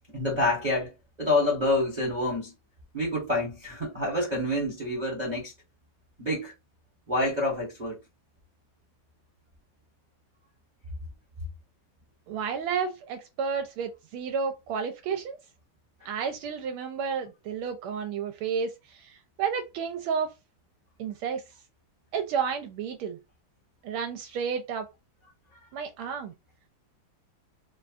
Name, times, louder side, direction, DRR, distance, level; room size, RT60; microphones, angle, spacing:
voice 1, 0.1-0.9 1.2-2.5 2.9-5.5 6.2-6.5 7.1-8.0, left 2 dB, 25° right, 1.0 m, -27 dB
voice 2, 12.3-15.4 16.0-20.3 21.0-21.4 22.1-23.2 23.8-24.9 25.7-26.3, right 6 dB, 80° right, 1.4 m, -31 dB
3.9 x 2.2 x 2.4 m
omnidirectional pair, 2.4 m